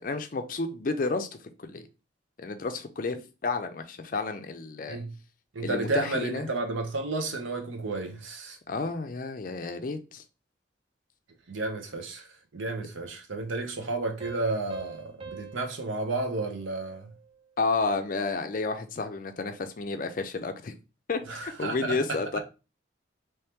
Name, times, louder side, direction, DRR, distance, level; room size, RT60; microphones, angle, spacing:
voice 1, 0.0-1.9 2.4-5.0 5.6-6.5 8.7-10.2 17.6-20.7 21.1-22.4, left 3 dB, 45° left, 0.4 m, -31 dB
voice 2, 5.5-8.6 11.5-12.3 12.5-17.1 21.3-22.0, right 2 dB, 90° right, 0.8 m, -32 dB
sound 1, 14.2-17.5, right 5 dB, 30° right, 0.5 m, -46 dB
3.1 x 2.9 x 3.4 m
head